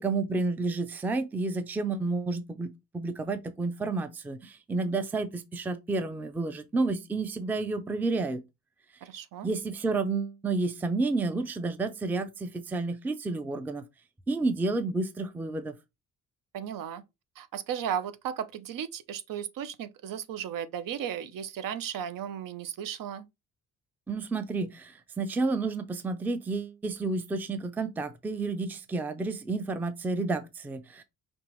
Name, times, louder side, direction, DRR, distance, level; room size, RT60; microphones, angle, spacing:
voice 1, 0.0-8.4 9.4-13.8 14.3-15.7 24.1-31.0, right 3 dB, 5° right, 0.3 m, -30 dB
voice 2, 9.0-9.5 16.5-17.0 17.4-23.3, right 9 dB, 80° right, 0.6 m, -35 dB
5.3 x 2.9 x 3.0 m
cardioid pair, 160°, 33 cm